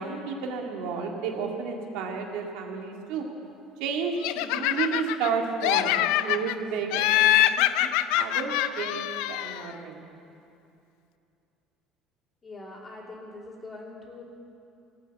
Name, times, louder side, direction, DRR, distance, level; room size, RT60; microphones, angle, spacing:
voice 1, 0.0-3.3 3.8-7.9 8.2-10.0, right 5 dB, 80° right, 2 dB, 2.1 m, -32 dB
Laughter, 4.2-5.3 5.6-6.6 6.9-9.7, left 13 dB, 85° left, 0.4 m, -24 dB
voice 2, 12.4-14.2, left 2 dB, 25° left, -3 dB, 3.0 m, -43 dB
18.0 x 8.9 x 8.1 m, 2.7 s
cardioid pair, 135°, 0 cm